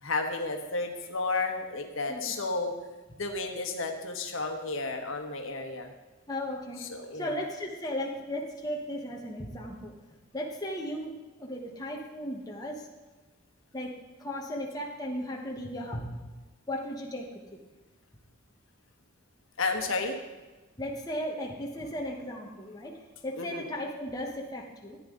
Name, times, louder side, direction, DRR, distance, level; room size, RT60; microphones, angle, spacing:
voice 1, 0.0-2.7 3.2-5.9 6.8-7.4 19.6-20.1 23.4-23.6, left 3 dB, 70° left, 4 dB, 1.3 m, -32 dB
voice 2, 6.3-6.9 7.1-12.9 13.7-16.1 16.7-17.6 20.8-25.0, equal, 20° left, -1 dB, 1.2 m, -36 dB
14.0 x 9.6 x 3.8 m, 1.2 s
head